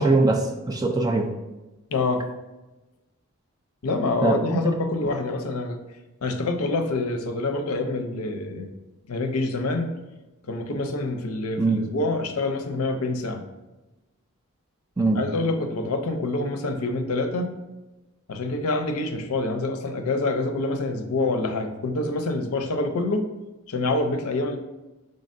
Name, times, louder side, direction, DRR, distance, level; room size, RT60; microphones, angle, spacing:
voice 1, 0.0-1.3 4.2-4.6 11.6-11.8 15.0-15.2, right 2 dB, 15° right, 2 dB, 0.3 m, -21 dB
voice 2, 1.9-2.2 3.8-5.8 6.2-8.7 9.1-9.9 10.5-13.4 15.1-17.6 18.3-23.2 23.7-24.6, left 2 dB, 85° left, 6 dB, 0.5 m, -26 dB
5.2 x 3.8 x 2.5 m, 1.1 s
head